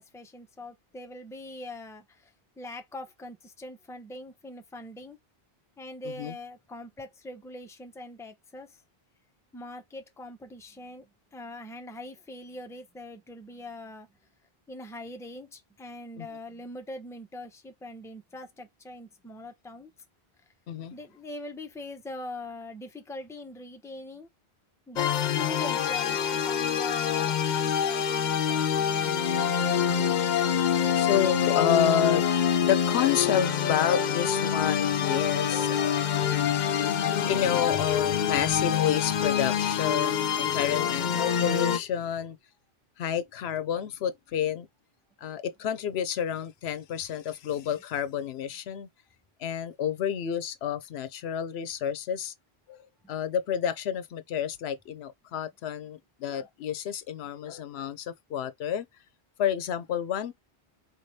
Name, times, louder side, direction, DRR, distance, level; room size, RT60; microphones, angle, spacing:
voice 1, 0.0-5.2 5.8-8.8 9.5-14.1 14.7-19.9 20.9-24.3 24.9-29.1, left 2 dB, 5° left, 0.6 m, -42 dB
voice 2, 6.0-6.4 16.2-16.3 20.7-21.0 29.7-30.0 30.9-32.3 32.6-42.4 43.0-44.7 45.2-48.9 49.4-52.3 52.7-52.8 53.1-58.9 59.4-60.3, left 9 dB, 80° left, 0.9 m, -30 dB
sound 1, 25.0-41.8, left 8 dB, 55° left, 0.6 m, -26 dB
4.2 x 3.2 x 2.7 m
omnidirectional pair, 1.1 m